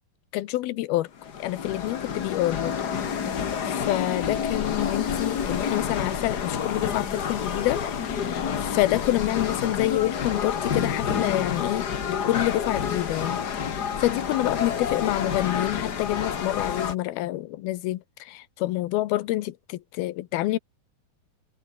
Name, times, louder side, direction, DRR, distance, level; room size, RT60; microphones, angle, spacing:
voice 1, 0.3-1.1 1.4-2.9 3.3-7.8 8.1-20.6, left 16 dB, 85° left, 2.9 m, -27 dB
sound 1, 1.2-16.9, left 7 dB, 70° left, 0.9 m, -29 dB
omnidirectional pair, 4.3 m